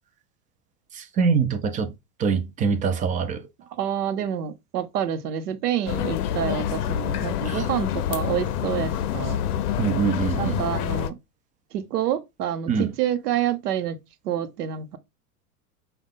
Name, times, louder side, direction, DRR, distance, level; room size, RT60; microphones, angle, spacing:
voice 1, 0.9-1.9 2.2-3.4 7.5-7.6 9.8-10.6 12.7-12.9, right 5 dB, 20° right, 0.3 m, -24 dB
voice 2, 3.7-9.4 10.4-11.2 11.7-14.0 14.2-15.0, right 10 dB, 80° right, 0.8 m, -28 dB
sound 1, 5.9-11.1, left 10 dB, 70° left, 0.6 m, -27 dB
5.3 x 2.3 x 3.5 m
hypercardioid pair, 105°, 46 cm